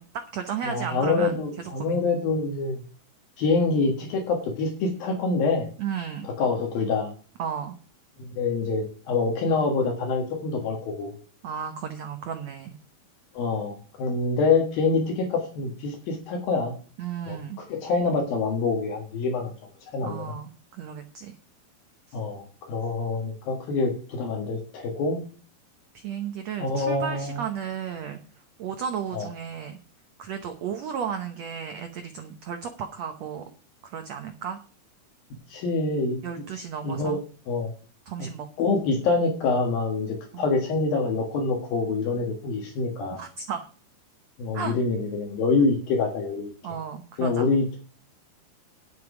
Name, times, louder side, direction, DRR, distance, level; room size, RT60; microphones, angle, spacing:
voice 1, 0.0-2.1 5.8-6.3 7.4-7.8 11.4-12.8 17.0-17.6 20.0-21.3 22.1-22.2 25.9-28.2 28.6-29.8 30.2-33.4 33.8-34.6 36.2-37.2 38.1-38.7 40.3-40.4 43.1-43.7 44.5-44.7 46.6-47.4, right 7 dB, 85° right, 7 dB, 1.5 m, -34 dB
voice 2, 0.6-2.8 3.4-5.7 6.2-7.1 8.2-11.1 13.3-16.8 17.3-19.5 19.9-20.3 22.1-25.2 26.6-27.5 29.1-29.3 35.5-36.2 36.8-37.2 37.5-37.7 38.6-43.2 44.4-46.5 47.2-47.8, left 3 dB, 65° left, 3 dB, 3.3 m, -26 dB
11.0 x 8.3 x 4.9 m, 0.39 s
omnidirectional pair, 4.6 m